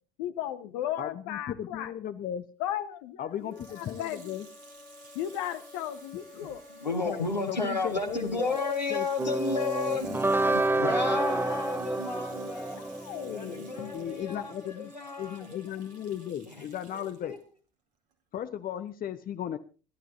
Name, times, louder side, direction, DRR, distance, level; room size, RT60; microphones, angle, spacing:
voice 1, 0.2-1.9 2.6-4.4 5.1-6.6 12.8-13.9, left 11 dB, 65° left, 1.3 m, -36 dB
voice 2, 1.0-2.4 3.2-4.5 7.0-8.6 8.9-9.0 13.9-17.4 18.3-19.6, left 10 dB, 45° left, 1.1 m, -36 dB
Water tap faucet / Sink (filling or washing), 3.4-17.4 18.1-18.2, right 4 dB, 70° right, 2.5 m, -55 dB
Wind instrument woodwind instrument, 3.5-16.3, left 3 dB, 15° left, 4.4 m, -52 dB
voice 3, 6.4-12.8 13.3-15.6 16.5-16.7 16.9-17.4, left 3 dB, 90° left, 1.7 m, -32 dB
sound 1, 9.2-14.2, right 2 dB, 10° right, 0.9 m, -29 dB
28.5 x 12.0 x 2.8 m
figure-of-eight pair, 55°, 21 cm